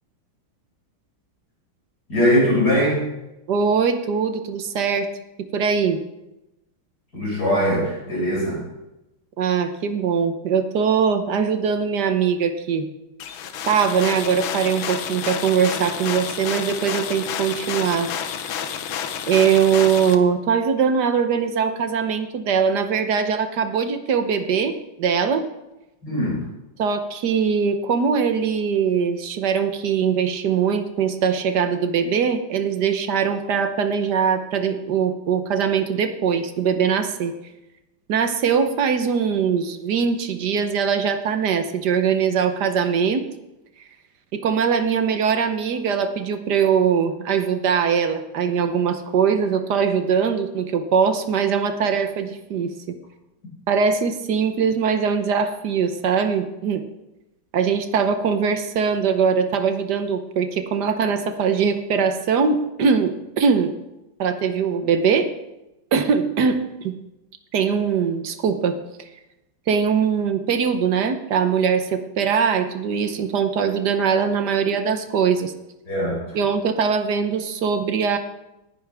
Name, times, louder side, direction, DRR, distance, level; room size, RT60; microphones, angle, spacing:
voice 1, 2.1-3.1 7.1-8.6 26.0-26.5 75.9-76.4, equal, 45° left, -4 dB, 5.7 m, -21 dB
voice 2, 3.5-5.1 5.4-6.0 9.4-12.9 13.6-18.1 19.3-25.5 26.8-37.3 38.1-43.3 44.3-53.0 53.7-56.8 57.5-63.7 64.2-65.3 65.9-66.9 67.5-68.8 69.7-75.5 76.3-78.2, right 6 dB, 60° right, 8 dB, 1.4 m, -21 dB
sound 1, 13.2-20.1, left 8 dB, 80° left, 1.7 m, -30 dB
18.5 x 10.5 x 3.5 m, 0.95 s
omnidirectional pair, 2.2 m